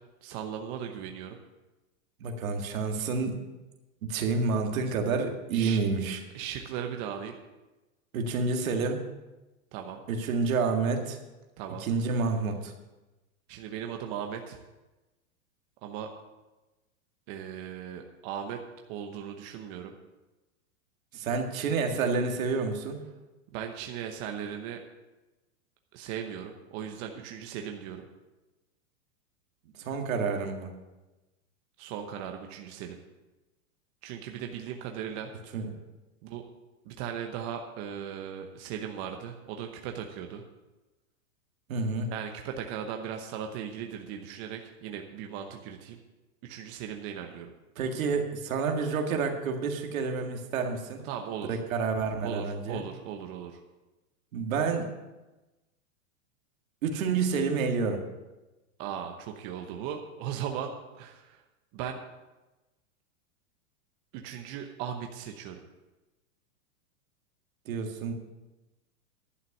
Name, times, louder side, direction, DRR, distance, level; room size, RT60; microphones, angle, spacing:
voice 1, 0.2-1.4 5.5-5.8 6.3-7.4 9.7-10.0 11.6-11.9 13.5-14.6 15.8-16.1 17.3-18.6 18.9-19.9 23.5-24.8 25.9-28.0 31.8-33.0 34.0-35.3 36.2-36.4 36.8-40.4 42.1-46.0 46.4-47.5 51.0-51.6 52.2-53.6 58.8-61.4 61.7-62.0 64.1-65.6, right 8 dB, 35° right, 4 dB, 0.9 m, -38 dB
voice 2, 2.2-3.4 4.0-6.2 8.1-9.0 10.1-11.2 11.8-12.7 21.1-23.0 29.8-30.7 35.5-35.7 41.7-42.1 47.8-51.0 51.5-52.8 54.3-54.9 56.8-58.0 67.7-68.1, right 4 dB, 75° right, 4 dB, 2.0 m, -29 dB
11.0 x 5.7 x 8.4 m, 1.1 s
supercardioid pair, 145°, 41 cm